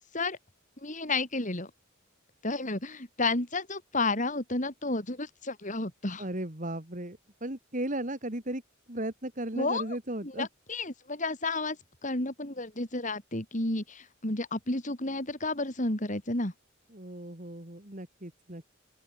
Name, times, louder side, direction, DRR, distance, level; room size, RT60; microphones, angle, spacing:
voice 1, 0.8-1.7 2.4-6.3 9.6-10.0 10.2-11.8 12.0-16.5, left 2 dB, 40° left, 3.9 m, -31 dB
voice 2, 6.2-8.6 8.9-10.5 16.9-18.6, right 1 dB, 40° right, 3.1 m, -36 dB
open air
head